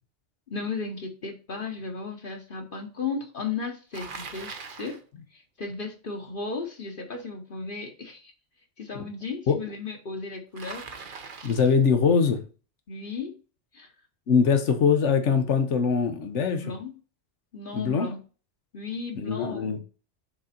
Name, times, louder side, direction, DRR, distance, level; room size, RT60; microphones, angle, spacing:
voice 1, 0.5-4.5 4.8-5.0 5.3-8.3 8.8-10.9 12.9-13.3 13.7-13.9 16.5-16.9 17.5-18.2 18.7-19.8, left 4 dB, 50° left, 1.1 m, -35 dB
Bicycle, 3.9-5.0 10.6-11.8, right 5 dB, 50° right, 1.0 m, -41 dB
voice 2, 11.4-12.4 14.3-16.7 17.7-18.1 19.1-19.8, left 6 dB, 90° left, 1.2 m, -22 dB
6.7 x 3.8 x 4.2 m
omnidirectional pair, 1.2 m